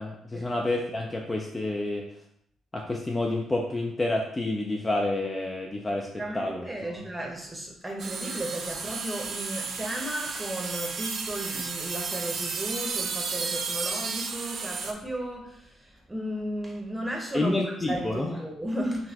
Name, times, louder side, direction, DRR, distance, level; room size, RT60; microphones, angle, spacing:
voice 1, 0.0-2.0 2.7-6.1 6.3-6.9 17.3-18.4, left 2 dB, 20° left, 0 dB, 0.4 m, -29 dB
voice 2, 6.1-19.1, right 1 dB, 10° right, 0 dB, 0.8 m, -34 dB
sound 1, 8.0-14.9, right 5 dB, 60° right, 0.4 m, -33 dB
3.9 x 2.2 x 2.8 m, 0.70 s
cardioid pair, 90°, 0 cm